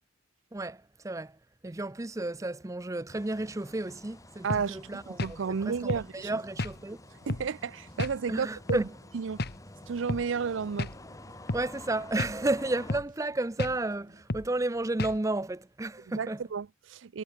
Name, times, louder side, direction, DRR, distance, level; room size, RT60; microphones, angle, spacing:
voice 1, 0.5-1.3 1.6-7.0 8.3-8.9 11.5-16.4, right 2 dB, 15° right, 0.6 m, -32 dB
sound 1, 3.1-13.0, left 1 dB, 15° left, 2.0 m, -50 dB
voice 2, 4.4-6.3 7.3-8.9 9.1-9.4 9.9-10.9 16.2-17.2, right 6 dB, 80° right, 0.5 m, -32 dB
sound 2, 4.5-4.7 5.2-5.4 5.9-6.1 6.6-6.8 7.3-7.5 8.0-8.2 8.7-8.9 9.4-9.6 10.1-10.3 10.8-11.0 11.5-11.7 12.2-12.4 12.9-13.1 13.6-13.8 14.3-14.5 15.0-15.2, left 2 dB, 55° left, 1.4 m, -32 dB
sound 3, 6.4-14.2, right 1 dB, 45° right, 6.2 m, -61 dB
head